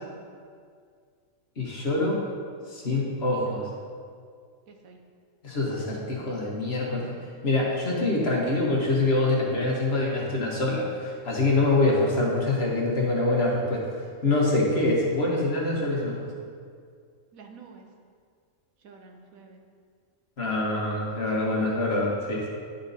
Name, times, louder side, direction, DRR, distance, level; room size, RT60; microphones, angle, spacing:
voice 1, 1.6-2.2 2.7-3.7 5.4-7.1 7.4-13.8 14.2-16.2 20.4-22.5, left 2 dB, 50° left, -3 dB, 1.5 m, -25 dB
voice 2, 4.7-5.0 17.3-17.9 18.8-19.6, right 5 dB, 80° right, 2 dB, 1.3 m, -48 dB
10.5 x 4.1 x 4.0 m, 2.1 s
omnidirectional pair, 1.4 m